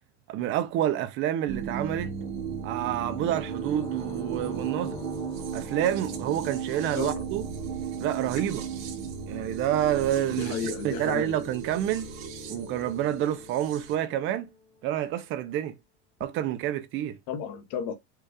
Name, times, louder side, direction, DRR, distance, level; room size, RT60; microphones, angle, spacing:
voice 1, 0.3-2.1 2.6-5.0 5.5-7.5 8.0-8.6 9.3-10.5 10.8-12.1 12.5-14.5 14.8-15.7 16.2-17.2, right 11 dB, 35° right, 0.4 m, -28 dB
sound 1, 1.5-13.9, right 8 dB, 75° right, 1.2 m, -36 dB
sound 2, 3.3-14.8, left 4 dB, 10° left, 1.1 m, -45 dB
voice 2, 7.0-7.3 10.3-11.4 17.3-17.9, left 8 dB, 65° left, 1.0 m, -33 dB
4.6 x 2.3 x 4.7 m
cardioid pair, 170°, 35 cm